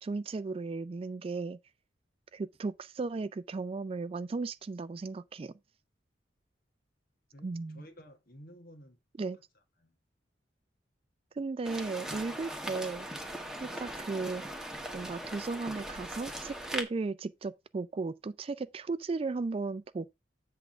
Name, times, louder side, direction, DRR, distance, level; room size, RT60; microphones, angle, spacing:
voice 1, 0.0-1.6 2.3-5.5 7.4-7.8 9.2-9.4 11.4-13.1 13.6-14.4 14.9-20.1, right 3 dB, 30° right, 0.3 m, -35 dB
voice 2, 7.3-10.0, equal, 55° left, 1.6 m, -54 dB
sound 1, 11.6-16.8, right 1 dB, 5° right, 1.1 m, -39 dB
8.1 x 3.6 x 5.8 m
head